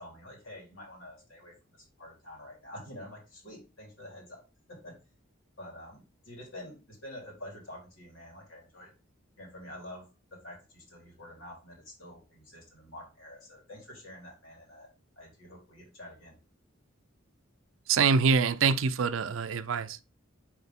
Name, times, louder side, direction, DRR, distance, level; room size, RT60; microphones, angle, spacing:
voice 1, 0.0-4.4 4.7-5.0 5.6-8.9 9.4-14.9 15.2-16.4, left 1 dB, 80° left, 3.4 m, -47 dB
voice 2, 17.9-20.0, right 5 dB, 70° right, 0.5 m, -25 dB
6.3 x 4.6 x 3.5 m
head